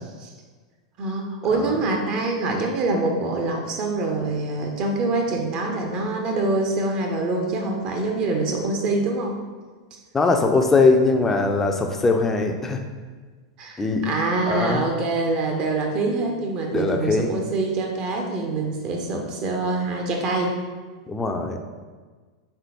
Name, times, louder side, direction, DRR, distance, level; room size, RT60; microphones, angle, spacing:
voice 1, 1.0-9.4 9.9-10.0 13.6-20.6, right 3 dB, 40° right, 2 dB, 0.6 m, -25 dB
voice 2, 10.1-12.8 13.8-14.1 14.5-14.9 16.7-17.3 21.1-21.6, left 3 dB, 15° left, 4 dB, 0.4 m, -21 dB
3.6 x 3.4 x 2.9 m, 1.4 s
figure-of-eight pair, 90°, 2 cm